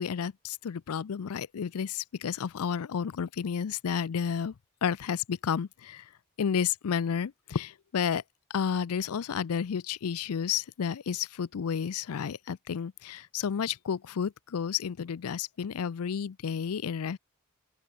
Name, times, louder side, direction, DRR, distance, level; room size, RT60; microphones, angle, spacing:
voice 1, 0.0-4.5 4.8-6.0 6.4-8.2 8.5-17.2, left 7 dB, 85° left, 0.4 m, -31 dB
open air
head